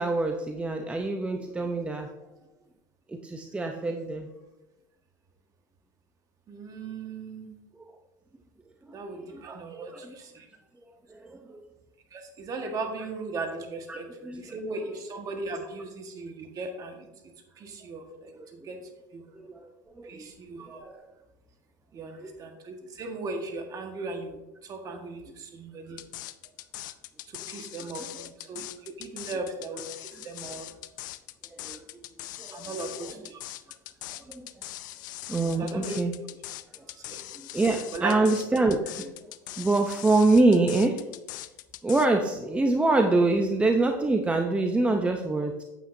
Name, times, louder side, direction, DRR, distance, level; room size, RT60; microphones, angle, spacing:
voice 1, 0.0-2.1 3.1-4.3 8.9-9.4 9.8-10.2 11.1-11.7 13.9-14.0 14.2-14.4 14.7-14.8 18.2-18.4 19.3-19.7 20.0-20.3 20.7-21.0 22.2-22.3 27.6-27.7 28.0-28.3 31.6-32.0 32.4-32.7 33.0-33.1 34.1-34.5 35.3-36.1 37.4-39.1 39.6-41.0 41.8-45.6, right 2 dB, 10° right, 4 dB, 0.7 m, -26 dB
voice 2, 6.5-7.5 8.9-10.4 12.1-14.1 14.4-17.1 17.6-18.8 19.1-19.2 20.0-20.8 21.9-24.3 24.6-26.0 27.3-30.7 32.5-33.4 35.6-36.0 37.0-37.2 37.9-38.2, right 3 dB, 35° right, 4 dB, 1.6 m, -37 dB
sound 1, 26.0-42.1, left 15 dB, 75° left, 0.5 m, -41 dB
9.1 x 8.0 x 2.7 m, 0.99 s
hypercardioid pair, 100°, 10 cm